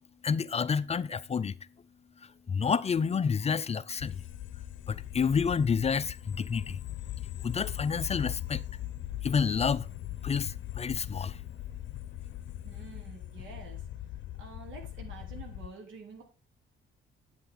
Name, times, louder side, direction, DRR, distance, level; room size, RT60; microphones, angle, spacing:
voice 1, 0.2-1.5 2.5-4.1 4.9-6.8 7.4-8.6 9.2-9.9 10.2-11.4, left 6 dB, 30° left, 0.5 m, -29 dB
sound 1, 4.0-15.7, left 13 dB, 70° left, 0.7 m, -40 dB
voice 2, 12.6-13.9 14.4-16.2, right 4 dB, 80° right, 3.6 m, -48 dB
9.6 x 8.8 x 3.9 m
cardioid pair, 90°, 20 cm